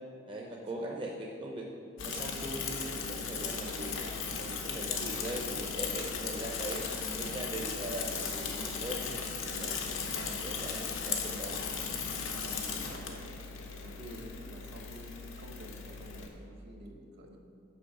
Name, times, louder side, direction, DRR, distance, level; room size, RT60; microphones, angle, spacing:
voice 1, 0.3-1.7 2.0-3.9 4.4-6.8 7.2-9.0 9.4-9.8 10.2-11.6 12.8-12.9 14.0-14.2, right 1 dB, 25° right, -1 dB, 0.6 m, -40 dB
Bicycle / Mechanisms, 2.0-16.3, left 5 dB, 80° left, 0.8 m, -37 dB
voice 2, 12.1-13.2 13.8-17.4, equal, 60° right, 2 dB, 1.0 m, -50 dB
6.3 x 5.2 x 5.9 m, 2.4 s
head